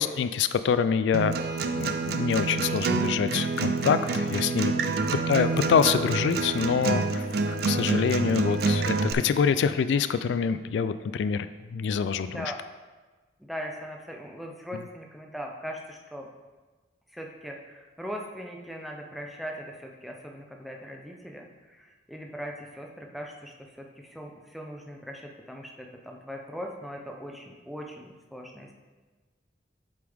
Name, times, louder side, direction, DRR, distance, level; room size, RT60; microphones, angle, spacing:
voice 1, 0.0-1.3 1.7-4.7 5.3-11.5 11.7-12.5, left 6 dB, 80° left, 12 dB, 0.3 m, -26 dB
Acoustic guitar, 1.1-9.1, right 3 dB, 60° right, 0.5 m, -27 dB
voice 2, 12.2-12.6 13.4-16.3 17.1-28.7, equal, ahead, 0 dB, 0.6 m, -40 dB
7.9 x 5.2 x 3.5 m, 1.3 s
head